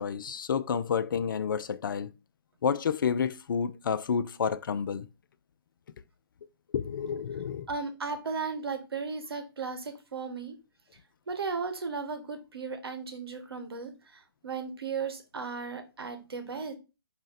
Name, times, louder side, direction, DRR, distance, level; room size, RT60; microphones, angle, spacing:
voice 1, 0.0-2.1 2.6-5.1 6.7-7.7, left 7 dB, 55° left, 0.4 m, -30 dB
voice 2, 7.7-10.6 11.3-16.7, right 4 dB, 70° right, 1.1 m, -36 dB
4.9 x 2.7 x 4.0 m
figure-of-eight pair, 140°, 13 cm